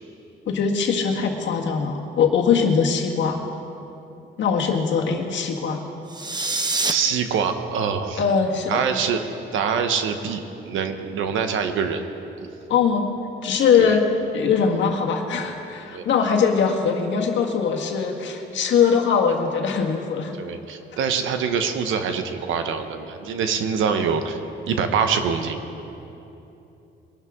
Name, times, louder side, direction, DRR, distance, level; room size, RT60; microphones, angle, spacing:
voice 1, 0.5-3.4 4.4-5.8 8.2-8.8 12.7-13.1 13.4-14.1 14.3-20.3, left 6 dB, 70° left, 1 dB, 1.7 m, -21 dB
sound 1, 6.1-6.9, right 3 dB, 20° right, 0.9 m, -25 dB
voice 2, 6.9-8.2 8.7-9.2 9.5-12.1 12.4-12.5 13.8-14.0 15.9-16.0 20.4-25.6, right 6 dB, 80° right, 7 dB, 1.1 m, -24 dB
21.5 x 12.0 x 3.8 m, 2.9 s
cardioid pair, 90°, 20 cm